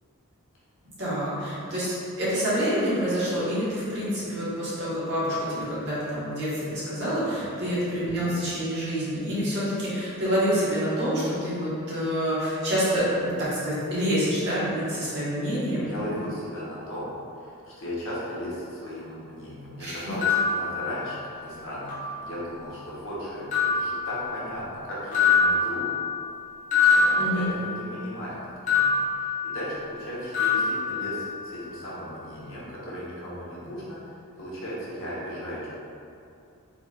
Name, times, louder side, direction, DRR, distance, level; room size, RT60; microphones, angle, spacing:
voice 1, 1.0-16.1 19.8-20.0 27.2-27.5, equal, 50° right, -10 dB, 1.3 m, -27 dB
voice 2, 15.8-17.1 17.4-23.5 23.7-25.8 26.9-35.7, equal, 60° left, -7 dB, 1.0 m, -36 dB
sound 1, 20.2-21.5 21.9-22.7 23.5-24.8 25.1-28.1 28.7-30.0 30.3-31.7, left 5 dB, 35° left, 0.9 m, -25 dB
3.8 x 3.3 x 2.4 m, 2.5 s
head